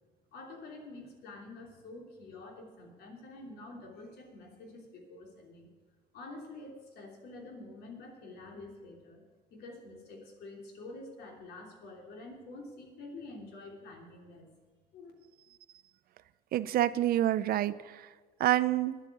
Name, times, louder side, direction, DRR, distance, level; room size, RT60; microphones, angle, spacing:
voice 1, 0.3-5.7 6.1-9.2 9.5-14.5 14.9-15.1, left 2 dB, 75° left, 1 dB, 3.2 m, -48 dB
voice 2, 16.5-18.0 18.4-19.0, right 13 dB, 65° right, 15 dB, 0.6 m, -27 dB
10.0 x 8.4 x 9.3 m, 1.4 s
cardioid pair, 110°, 17 cm